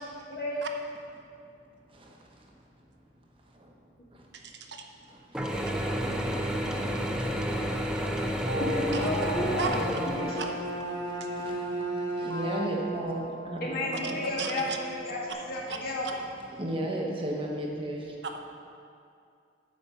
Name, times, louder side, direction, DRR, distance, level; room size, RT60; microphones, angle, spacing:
voice 1, 0.3-0.6 6.0-6.7 8.6-10.5 13.6-15.2 15.5-16.2, left 1 dB, 50° left, -4 dB, 2.0 m, -33 dB
voice 2, 1.9-2.7 3.5-3.8 4.1-4.4 5.0-8.2 10.9-14.3 15.7-15.8 16.5-18.2, right 1 dB, 30° right, -1 dB, 1.0 m, -37 dB
voice 3, 4.4-4.8 9.0-9.1 9.6-9.7 10.4-10.5 14.4-14.8 15.7-15.8, right 5 dB, 65° right, 3 dB, 0.8 m, -34 dB
Mechanisms / Drill, 5.3-10.8, equal, 5° right, 0.6 m, -31 dB
sound 1, 5.9-15.3, equal, 90° right, 1.1 m, -39 dB
Bowed string instrument, 8.9-13.1, right 2 dB, 20° left, 1.1 m, -35 dB
9.7 x 5.2 x 7.0 m, 2.4 s
head